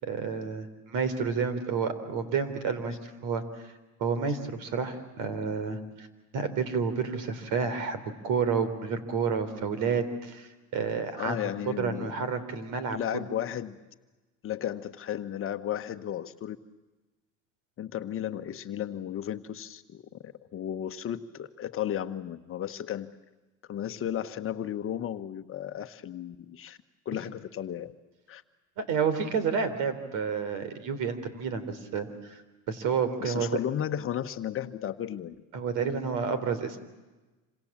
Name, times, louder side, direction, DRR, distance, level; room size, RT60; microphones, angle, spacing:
voice 1, 0.0-3.4 4.0-6.1 6.3-11.4 11.7-13.2 28.9-32.3 32.7-33.6 35.5-36.8, right 6 dB, 60° right, 12 dB, 3.7 m, -30 dB
voice 2, 11.2-12.2 12.9-13.8 14.4-16.6 17.8-23.1 23.7-26.8 27.0-27.9 28.3-28.4 33.2-35.4, left 10 dB, 40° left, 8 dB, 1.2 m, -34 dB
27.5 x 26.5 x 7.4 m, 1.2 s
supercardioid pair, 120°, 35 cm